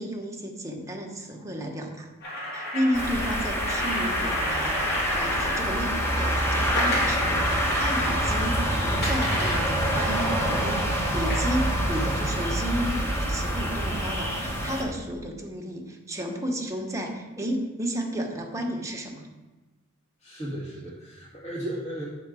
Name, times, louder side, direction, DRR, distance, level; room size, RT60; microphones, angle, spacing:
voice 1, 0.0-2.1 2.5-19.3, equal, 15° right, 0 dB, 1.1 m, -32 dB
sound 1, 2.2-5.6 6.8-8.2 9.0-10.2 11.3-11.5 12.4-12.5, left 1 dB, 45° left, 3.0 m, -31 dB
sound 2, 2.9-14.8, equal, 10° left, 1.3 m, -26 dB
voice 2, 20.2-22.0, right 1 dB, 30° left, -6 dB, 1.9 m, -35 dB
8.7 x 3.9 x 6.1 m, 1.1 s
head